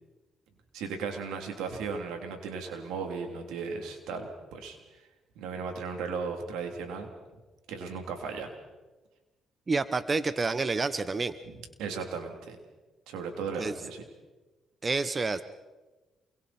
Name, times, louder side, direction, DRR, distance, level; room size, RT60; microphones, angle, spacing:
voice 1, 0.7-5.1 5.3-7.1 7.7-8.5 11.4-11.5 11.8-12.6 13.1-14.0, right 5 dB, 90° right, 4 dB, 3.4 m, -36 dB
voice 2, 9.7-11.3 13.6-13.7 14.8-15.4, right 3 dB, 35° right, 12 dB, 1.1 m, -28 dB
28.0 x 23.5 x 4.5 m, 1.2 s
cardioid pair, 80°, 0 cm